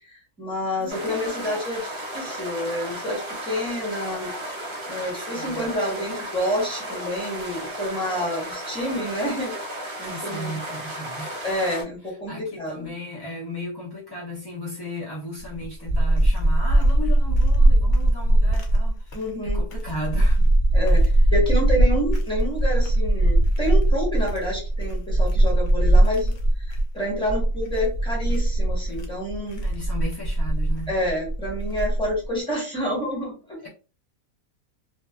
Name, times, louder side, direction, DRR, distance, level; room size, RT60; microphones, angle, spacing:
voice 1, 0.1-4.3 4.9-9.5 10.0-10.6 11.4-12.9 19.1-19.6 20.7-29.6 30.9-33.7, left 1 dB, 5° left, -4 dB, 1.0 m, -28 dB
voice 2, 0.8-1.6 5.1-5.7 10.0-11.4 12.3-20.5 20.9-21.1 29.6-30.9 33.6-33.7, left 1 dB, 40° left, -7 dB, 0.3 m, -36 dB
sound 1, 0.9-11.8, right 1 dB, 35° right, 0.4 m, -34 dB
sound 2, 15.4-32.2, right 1 dB, 65° left, 0.8 m, -20 dB
2.5 x 2.3 x 2.3 m, 0.35 s
omnidirectional pair, 1.6 m